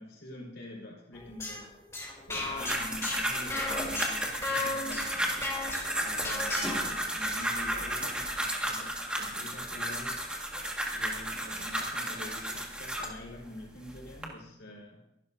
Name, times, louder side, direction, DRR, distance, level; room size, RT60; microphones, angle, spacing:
voice 1, 0.0-1.7 2.3-5.4 6.0-10.2 10.9-15.0, left 1 dB, 85° left, -2 dB, 5.0 m, -46 dB
sound 1, 1.1-6.9, left 2 dB, 15° left, 3.2 m, -36 dB
sound 2, 2.3-13.2 13.8-14.2, right 1 dB, 5° right, 1.8 m, -33 dB
25.0 x 12.5 x 2.7 m, 0.81 s
head